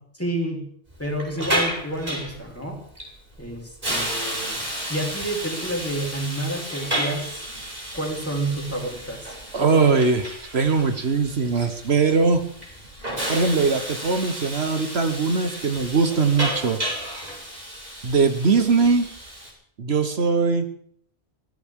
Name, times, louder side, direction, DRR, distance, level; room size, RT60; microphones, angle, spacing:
voice 1, 0.2-0.6 1.0-2.8 3.4-4.6 4.9-7.4 7.9-9.9, right 1 dB, 10° left, 0 dB, 3.7 m, -29 dB
Hiss, 0.9-19.5, right 1 dB, 35° right, 5.5 m, -32 dB
voice 2, 9.5-12.4 13.3-16.8 18.0-19.1 19.8-20.7, right 4 dB, 65° right, 8 dB, 1.4 m, -21 dB
24.0 x 15.0 x 3.7 m, 0.64 s
omnidirectional pair, 1.2 m